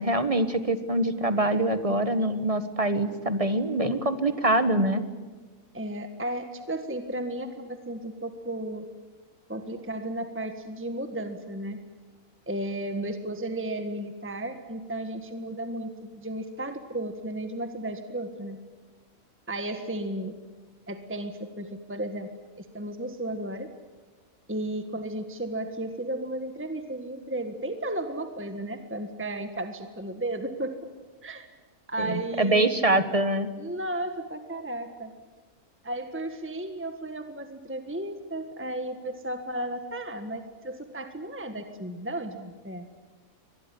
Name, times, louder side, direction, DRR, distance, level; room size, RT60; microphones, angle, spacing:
voice 1, 0.0-5.0 32.0-33.5, right 1 dB, 25° right, 10 dB, 1.4 m, -24 dB
voice 2, 5.7-8.8 9.5-11.8 12.5-18.6 19.5-20.4 20.9-22.3 22.6-23.7 24.5-30.7 31.2-31.5 31.9-32.8 33.6-35.1 35.8-42.9, right 1 dB, 10° right, 7 dB, 1.5 m, -34 dB
24.5 x 20.0 x 9.9 m, 1.3 s
omnidirectional pair, 1.5 m